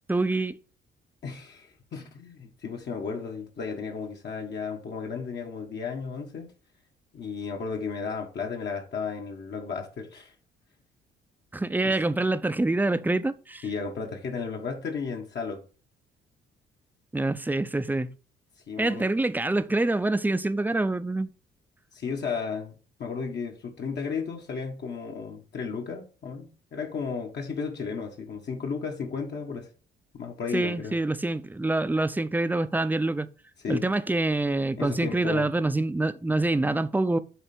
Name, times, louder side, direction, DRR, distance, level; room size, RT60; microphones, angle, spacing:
voice 1, 0.1-0.6 11.5-13.6 17.1-18.1 18.8-21.3 30.5-33.3 33.7-37.2, right 2 dB, 10° right, 0.5 m, -26 dB
voice 2, 1.2-6.5 7.1-10.3 11.8-11.9 13.6-15.6 18.7-19.1 21.9-29.7 30.1-30.9 33.6-33.8 34.8-35.5, left 5 dB, 60° left, 1.7 m, -34 dB
7.9 x 3.4 x 6.0 m
cardioid pair, 90°, 20 cm